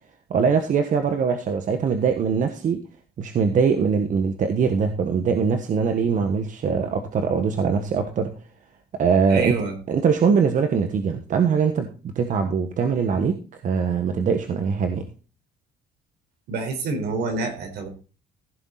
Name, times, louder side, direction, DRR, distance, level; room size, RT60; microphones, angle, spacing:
voice 1, 0.3-2.8 3.2-8.3 9.0-9.5 9.9-11.9 12.1-13.4 13.6-15.0, right 6 dB, 50° right, 6 dB, 1.4 m, -22 dB
voice 2, 9.3-9.8 16.5-17.9, right 4 dB, 75° right, 5 dB, 4.3 m, -27 dB
15.5 x 7.1 x 4.1 m, 0.36 s
cardioid pair, 110°, 17 cm